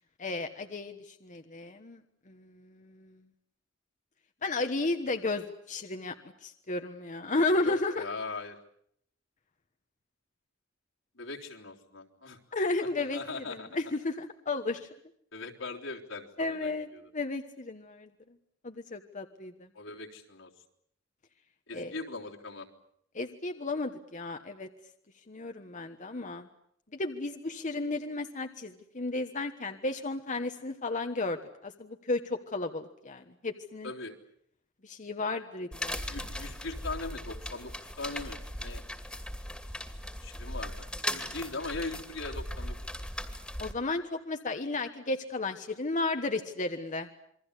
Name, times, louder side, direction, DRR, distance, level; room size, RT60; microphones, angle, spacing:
voice 1, 0.2-2.0 2.3-3.1 4.4-6.1 6.4-8.0 12.5-14.9 16.4-18.1 18.6-19.7 21.7-21.9 23.1-24.7 25.3-26.5 26.9-33.9 34.8-36.0 43.6-47.1, left 2 dB, 40° left, 6 dB, 1.3 m, -33 dB
voice 2, 7.6-8.6 11.2-12.4 13.1-13.7 15.3-17.0 19.8-20.5 21.7-22.7 33.8-34.1 36.0-37.7 38.0-38.8 40.2-42.9, left 3 dB, 80° left, 0 dB, 3.7 m, -40 dB
sound 1, 35.7-43.7, left 1 dB, 5° left, 2.5 m, -38 dB
28.0 x 23.0 x 8.3 m, 0.70 s
head